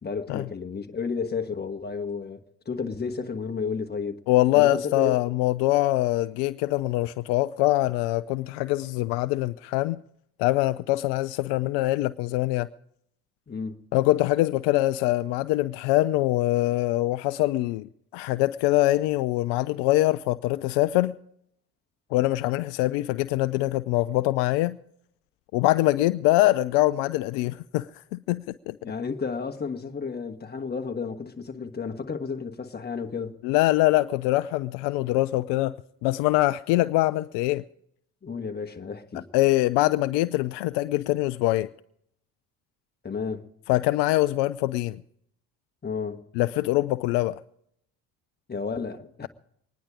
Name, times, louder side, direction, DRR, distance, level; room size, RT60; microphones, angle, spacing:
voice 1, 0.0-4.2 4.5-5.2 13.5-13.8 28.8-33.4 38.2-39.3 43.0-43.5 45.8-46.2 48.5-49.3, left 5 dB, 20° left, 1.4 m, -32 dB
voice 2, 4.3-10.0 10.4-12.7 13.9-21.2 22.1-24.8 25.5-28.8 33.4-35.7 36.0-37.6 39.3-41.7 43.7-45.0 46.4-47.4, left 17 dB, 60° left, 0.5 m, -23 dB
23.0 x 10.0 x 4.9 m
hypercardioid pair, 60°, 47 cm